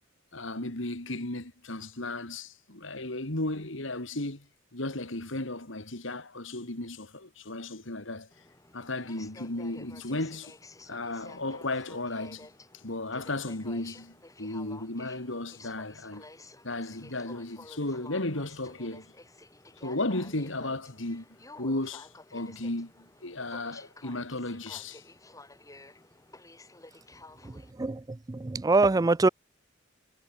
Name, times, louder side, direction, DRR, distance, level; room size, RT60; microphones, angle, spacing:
voice 1, 0.3-4.5 4.7-8.3 8.7-10.5 10.9-12.5 12.8-16.2 16.6-19.1 19.8-21.3 21.6-25.0, left 2 dB, 70° left, 3.1 m, -35 dB
Aircraft, 8.3-27.7, left 2 dB, 15° left, 5.8 m, -52 dB
voice 2, 27.8-29.3, right 3 dB, 20° right, 0.4 m, -24 dB
head